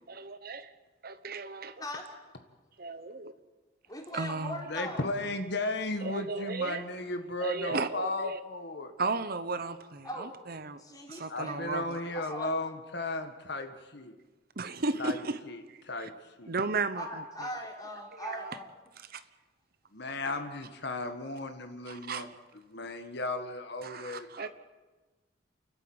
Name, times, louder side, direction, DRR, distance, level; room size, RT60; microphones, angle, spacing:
voice 1, 0.1-0.7 1.0-1.7 2.8-3.3 4.1-4.6 6.0-6.8 7.4-8.4 9.0-10.8 11.1-12.0 14.6-15.4 15.7-16.1 16.5-17.1 18.1-18.5 19.1-19.2 21.9-22.3 23.8-24.5, right 3 dB, 50° right, 12 dB, 1.0 m, -35 dB
voice 2, 3.9-5.0 10.0-10.3 10.8-11.7 12.1-12.5 16.9-18.7 19.1-19.2, equal, 20° left, 1 dB, 3.7 m, -40 dB
voice 3, 4.7-8.9 11.3-14.1 15.0-15.2 15.5-15.6 15.8-16.1 16.4-16.5 19.9-22.3 22.7-24.5, left 2 dB, 60° left, 7 dB, 1.7 m, -35 dB
29.0 x 12.5 x 8.9 m, 1.2 s
head